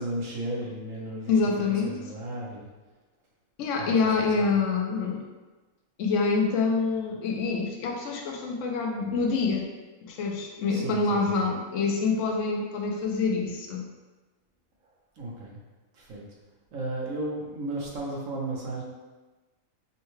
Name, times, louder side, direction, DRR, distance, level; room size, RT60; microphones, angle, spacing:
voice 1, 0.0-1.4 1.8-2.7 3.8-3.9 10.7-11.5 15.2-15.6 15.9-16.3 16.7-18.8, right 1 dB, 75° right, -3 dB, 1.3 m, -34 dB
voice 2, 1.3-2.0 3.6-5.2 6.0-9.7 10.0-13.9, left 4 dB, 70° left, 1 dB, 0.9 m, -26 dB
5.5 x 2.2 x 3.1 m, 1.2 s
omnidirectional pair, 1.4 m